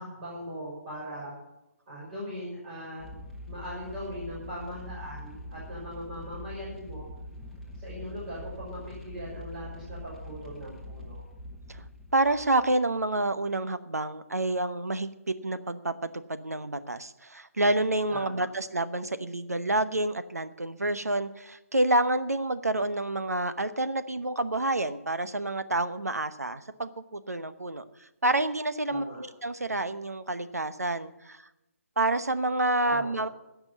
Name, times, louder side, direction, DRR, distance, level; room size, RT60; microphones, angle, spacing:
voice 1, 0.0-1.3 1.9-3.1 3.5-7.1 7.7-11.2 18.1-18.5 28.9-29.2 32.9-33.3, equal, 35° right, -6 dB, 6.0 m, -40 dB
sound 1, 3.0-13.1, left 1 dB, ahead, 1.5 m, -43 dB
voice 2, 12.1-31.4 32.0-33.3, right 2 dB, 85° right, 12 dB, 0.9 m, -28 dB
16.5 x 6.1 x 8.4 m, 0.93 s
figure-of-eight pair, 145°, 8 cm